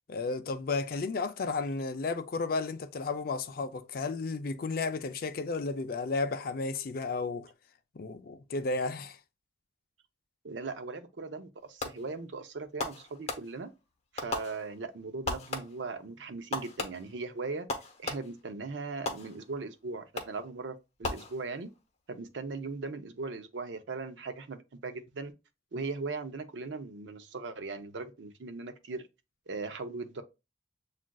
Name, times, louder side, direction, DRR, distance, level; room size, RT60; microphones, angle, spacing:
voice 1, 0.1-7.5 7.9-9.2, left 3 dB, 55° left, 0.4 m, -33 dB
voice 2, 10.4-13.7 14.1-17.7 18.0-21.7 22.1-25.3 25.7-29.1 29.5-30.2, right 3 dB, 85° right, 0.6 m, -39 dB
Fireworks, 11.8-12.2 12.8-13.8 14.2-14.9 15.2-16.0 16.5-18.5 19.1-19.7 20.2-20.6 21.0-21.8, left 3 dB, 35° left, 0.8 m, -38 dB
7.3 x 2.4 x 2.3 m
head